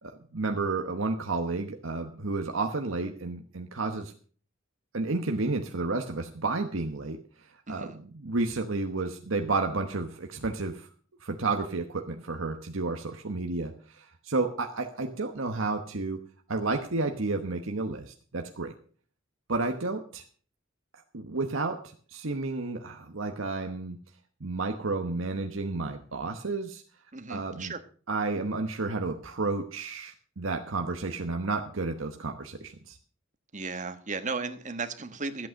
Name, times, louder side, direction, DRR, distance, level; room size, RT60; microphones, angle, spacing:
voice 1, 0.0-4.1 4.9-7.2 7.7-10.9 11.2-16.2 16.5-18.7 19.5-20.2 21.1-21.8 22.1-24.0 24.4-26.8 27.3-27.7 28.1-33.0, right 3 dB, 75° right, 5 dB, 1.1 m, -31 dB
voice 2, 7.7-8.0 27.1-27.8 33.5-35.5, right 4 dB, 40° right, 9 dB, 1.4 m, -35 dB
14.0 x 8.6 x 6.4 m, 0.43 s
head